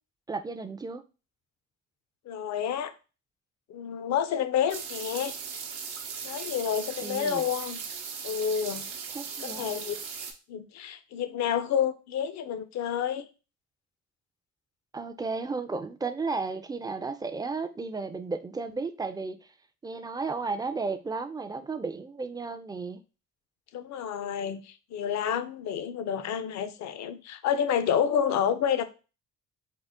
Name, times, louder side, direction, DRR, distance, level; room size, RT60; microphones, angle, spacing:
voice 1, 0.3-1.0 7.0-7.4 9.1-9.8 14.9-19.4 19.8-23.0, right 4 dB, 15° right, 0.3 m, -34 dB
voice 2, 2.3-2.9 3.7-5.3 6.2-7.8 8.2-8.9 9.4-10.0 10.5-13.3 23.7-28.8, left 8 dB, 65° left, 0.5 m, -29 dB
sound 1, 4.7-10.3, right 6 dB, 85° right, 0.7 m, -38 dB
3.8 x 2.1 x 3.5 m
cardioid pair, 90°, 30 cm